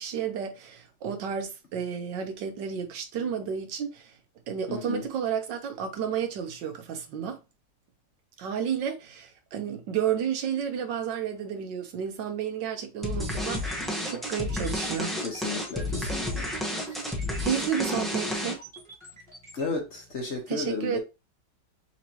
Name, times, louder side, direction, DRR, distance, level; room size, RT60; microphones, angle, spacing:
voice 1, 0.0-4.2 4.5-7.4 8.4-15.2 17.4-18.6 20.5-21.0, right 8 dB, 80° right, 1.5 m, -31 dB
voice 2, 4.7-5.1 15.2-16.5 16.8-17.0 19.5-21.0, left 4 dB, 45° left, 1.1 m, -34 dB
sound 1, 13.0-18.8, left 1 dB, ahead, 0.7 m, -31 dB
sound 2, 13.5-19.6, right 2 dB, 35° right, 2.2 m, -48 dB
5.8 x 3.1 x 2.9 m
omnidirectional pair, 1.9 m